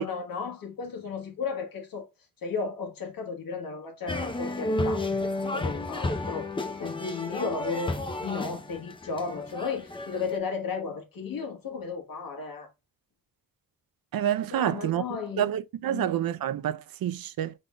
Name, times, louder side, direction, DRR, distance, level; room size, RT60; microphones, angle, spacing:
voice 1, 0.0-2.1 2.4-5.1 5.5-12.7 14.5-15.6 15.9-16.1, left 5 dB, 70° left, 1.4 m, -34 dB
sound 1, 4.1-10.4, left 2 dB, 15° left, 0.5 m, -32 dB
voice 2, 14.1-15.0 15.4-17.5, right 11 dB, 75° right, 0.5 m, -28 dB
5.2 x 4.0 x 2.2 m
wide cardioid pair, 140°, 36 cm